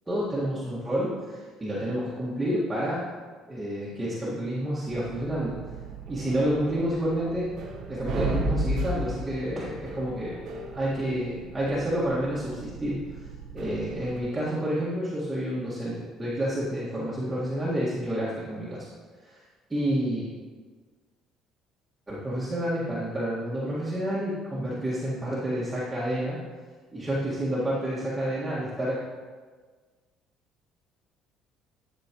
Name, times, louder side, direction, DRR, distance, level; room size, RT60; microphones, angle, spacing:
voice 1, 0.1-3.0 3.5-5.6 6.1-7.5 7.9-10.3 10.7-13.0 13.5-18.9 19.2-19.4 19.7-20.3 22.1-26.4 26.9-29.0, equal, 15° right, -9 dB, 1.8 m, -29 dB
sound 1, 4.9-14.2, right 1 dB, 55° right, 1.2 m, -35 dB
12.0 x 6.1 x 3.0 m, 1.5 s
cardioid pair, 105°, 0 cm